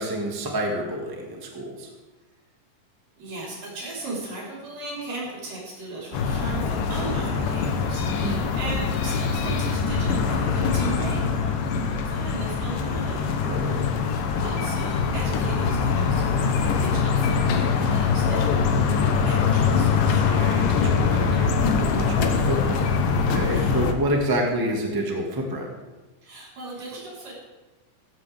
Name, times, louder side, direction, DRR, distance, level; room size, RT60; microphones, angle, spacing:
voice 1, 0.0-1.9 8.1-8.5 13.4-13.9 20.2-22.9 23.1-25.7, right 1 dB, 10° right, 0 dB, 1.1 m, -29 dB
voice 2, 3.2-14.0 14.4-18.6 18.9-20.2 21.2-21.6 23.4-23.9 26.2-27.4, right 2 dB, 75° right, -6 dB, 5.9 m, -37 dB
sound 1, 6.1-23.9, left 5 dB, 80° left, 2.7 m, -23 dB
15.5 x 15.0 x 3.6 m, 1.2 s
omnidirectional pair, 3.8 m